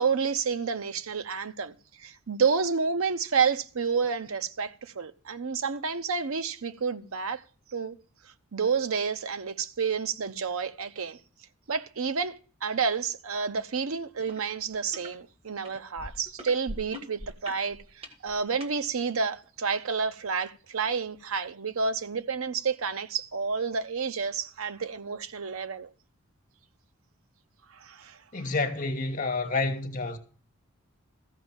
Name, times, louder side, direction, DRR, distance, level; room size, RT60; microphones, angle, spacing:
voice 1, 0.0-7.4 7.7-8.0 8.5-11.2 11.7-25.9 27.7-28.2, right 5 dB, 75° right, 0.7 m, -30 dB
sound 1, 14.3-14.4 14.7-15.1 15.7-18.7 19.4-19.5, equal, 25° right, 1.5 m, -42 dB
voice 2, 28.3-30.2, left 3 dB, 40° left, 1.3 m, -29 dB
14.0 x 5.2 x 7.3 m
head